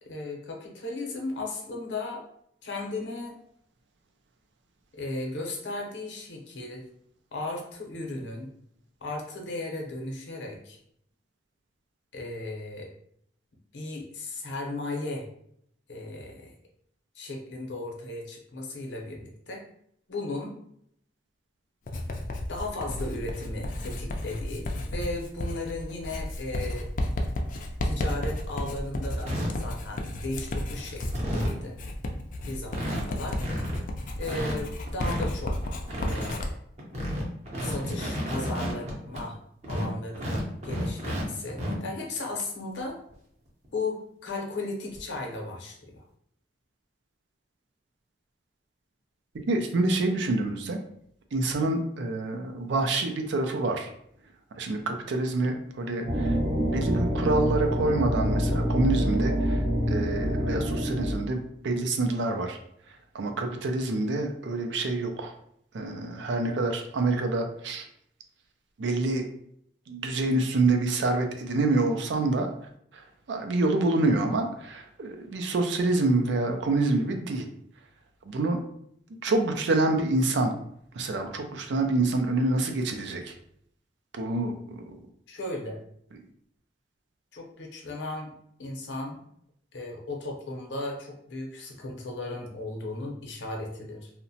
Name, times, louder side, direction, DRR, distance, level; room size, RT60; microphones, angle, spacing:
voice 1, 0.0-2.2 2.6-3.4 4.9-6.8 7.3-8.5 9.0-10.8 12.1-12.9 13.7-15.3 15.9-16.5 17.2-19.6 20.1-20.5 22.5-26.9 27.8-31.8 32.5-33.4 34.1-35.7 36.0-36.6 37.6-39.4 39.7-43.0 43.7-46.0 85.3-85.8 87.3-89.2 89.7-94.1, left 2 dB, 85° left, 0 dB, 0.7 m, -36 dB
Writing, 21.9-36.5, left 1 dB, 45° left, 0.3 m, -33 dB
sound 1, 27.8-27.9 28.3-28.7 29.3-29.5 30.1-30.5 30.8-30.9 31.1-31.6 32.1-32.2 32.4-32.5 32.7-33.0 33.3-33.8 34.2-35.2 35.6-36.3 36.8-39.2 39.6-41.2 41.5-41.7 43.1-43.2 43.6-43.7 45.0-45.1, equal, 40° right, 0.7 m, -31 dB
voice 2, 49.5-50.8 51.3-53.9 54.6-56.4 56.7-62.6 63.1-65.3 65.7-67.9 68.8-69.2 69.9-72.5 72.9-77.5 78.3-78.6 79.2-80.5 80.9-83.3 84.1-85.0, right 2 dB, 85° right, 5 dB, 0.4 m, -27 dB
sound 2, 56.0-61.2, equal, 65° right, 0.8 m, -26 dB
2.8 x 2.1 x 2.7 m, 0.70 s
head